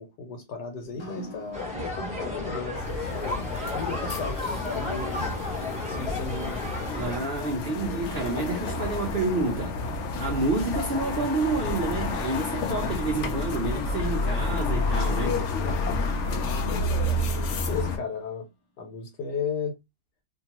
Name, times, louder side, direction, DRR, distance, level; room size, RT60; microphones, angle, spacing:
voice 1, 0.0-3.4 3.7-4.4 4.7-5.4 5.8-6.6 16.4-18.5 18.8-19.8, left 5 dB, 90° left, 1.4 m, -35 dB
sound 1, 0.7-18.6, left 1 dB, 25° left, 0.7 m, -50 dB
sound 2, 1.5-7.2, left 2 dB, 5° right, 0.9 m, -33 dB
sound 3, 2.8-18.0, left 2 dB, 70° left, 0.7 m, -30 dB
voice 2, 7.0-9.8 10.2-15.4, right 3 dB, 70° right, 0.5 m, -29 dB
2.8 x 2.3 x 2.9 m
omnidirectional pair, 1.8 m